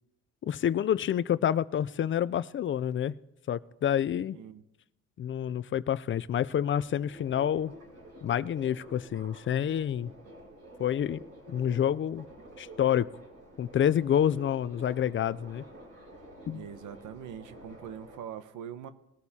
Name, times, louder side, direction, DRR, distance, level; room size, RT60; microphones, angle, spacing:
voice 1, 0.4-3.1 3.5-4.4 5.2-7.7 8.2-10.1 10.8-11.2 11.5-12.3 12.6-13.1 13.6-15.6 16.5-16.6, left 9 dB, 40° left, 18 dB, 0.4 m, -28 dB
voice 2, 4.3-4.6 16.5-18.9, right 9 dB, 80° right, 12 dB, 0.9 m, -43 dB
Subway metro underground, 6.8-18.2, right 1 dB, 55° right, 5.1 m, -50 dB
20.5 x 13.0 x 2.8 m, 0.88 s
cardioid pair, 90°, 30 cm